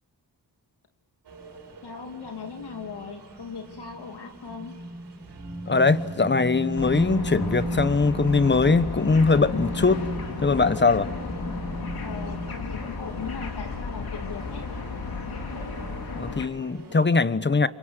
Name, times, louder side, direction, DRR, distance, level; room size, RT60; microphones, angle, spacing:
sound 1, 1.2-17.1, right 1 dB, 85° right, 5.7 m, -37 dB
voice 1, 1.8-4.8 12.0-14.6, left 5 dB, 75° left, 2.6 m, -38 dB
voice 2, 5.7-10.0 10.4-11.1 16.2-17.7, left 4 dB, 25° left, 1.1 m, -21 dB
sound 2, 6.8-16.5, left 4 dB, 60° left, 3.4 m, -34 dB
28.5 x 24.5 x 7.9 m
cardioid pair, 75°, 40 cm